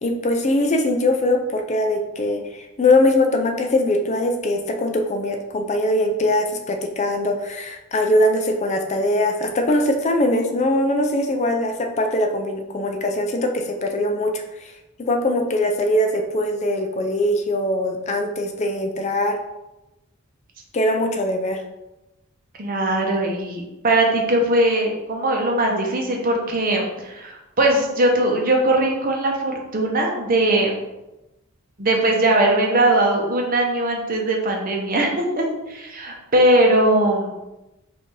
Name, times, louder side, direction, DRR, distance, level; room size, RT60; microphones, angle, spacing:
voice 1, 0.0-14.7 15.0-19.4 20.7-21.6, left 1 dB, 35° left, 4 dB, 0.4 m, -21 dB
voice 2, 22.6-30.7 31.8-37.4, right 1 dB, 45° right, 1 dB, 0.8 m, -20 dB
5.4 x 2.7 x 3.2 m, 0.97 s
head